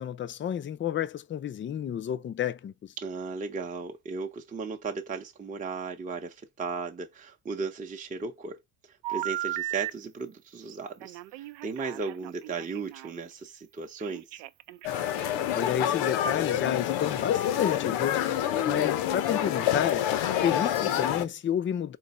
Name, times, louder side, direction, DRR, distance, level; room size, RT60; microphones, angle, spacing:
voice 1, 0.0-2.9 15.5-18.2 18.6-20.1 20.4-22.0, left 9 dB, 25° left, 0.5 m, -30 dB
voice 2, 3.0-8.6 8.9-14.4, right 4 dB, 15° right, 0.7 m, -36 dB
Telephone, 9.0-9.9 11.0-13.2 14.0-15.5, right 15 dB, 70° right, 0.5 m, -36 dB
sound 1, 14.8-21.3, left 11 dB, 75° left, 0.9 m, -27 dB
3.9 x 3.0 x 4.1 m
supercardioid pair, 95°, 46 cm